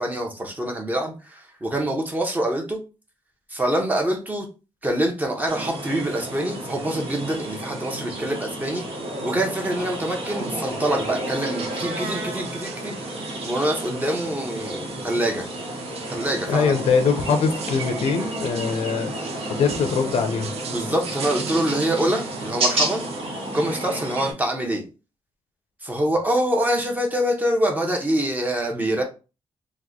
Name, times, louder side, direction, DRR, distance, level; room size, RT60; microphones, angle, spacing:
voice 1, 0.0-2.8 3.5-4.5 4.8-8.8 9.2-15.5 16.1-16.8 20.7-23.1 23.5-24.9 25.8-29.0, right 1 dB, 15° right, 0.7 m, -25 dB
sound 1, 5.5-24.3, right 1 dB, 65° right, 1.1 m, -31 dB
sound 2, 9.8-23.2, right 7 dB, 80° right, 0.5 m, -42 dB
voice 2, 16.5-19.1 19.5-20.5, left 5 dB, 90° left, 0.6 m, -22 dB
3.0 x 2.1 x 3.7 m
wide cardioid pair, 145°, 10 cm